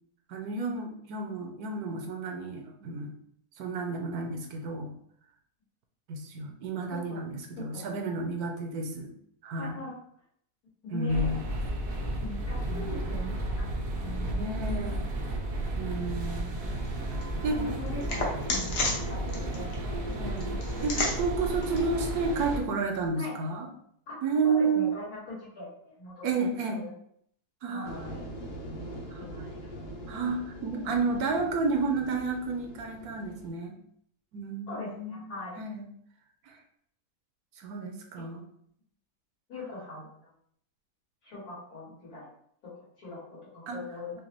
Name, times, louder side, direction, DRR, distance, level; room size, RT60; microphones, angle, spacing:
voice 1, 0.3-3.1 3.6-4.9 6.1-9.1 9.4-9.8 10.9-11.6 12.7-12.9 14.4-15.1 15.8-16.7 17.3-17.7 20.1-23.7 24.2-24.9 26.2-26.8 27.6-28.0 29.1-29.2 30.1-33.7 34.3-35.2 35.6-35.9 36.4-36.6 37.6-38.5 43.7-43.8, right 3 dB, 75° right, 4 dB, 1.1 m, -31 dB
voice 2, 9.6-10.0 10.8-11.4 12.2-15.0 17.6-19.7 20.0-20.1 23.2-23.3 24.1-24.2 24.4-26.3 26.7-26.8 27.7-28.3 29.1-29.5 34.7-35.6 39.5-40.1 41.2-42.3 42.6-42.7 43.0-44.1, left 1 dB, 70° left, -8 dB, 2.4 m, -41 dB
sound 1, 11.1-22.6, right 1 dB, 55° right, 0.6 m, -33 dB
sound 2, 16.3-23.1, left 2 dB, 55° left, 1.0 m, -36 dB
sound 3, 27.8-33.5, equal, 85° left, 1.4 m, -43 dB
5.0 x 2.2 x 3.0 m, 0.66 s
omnidirectional pair, 1.7 m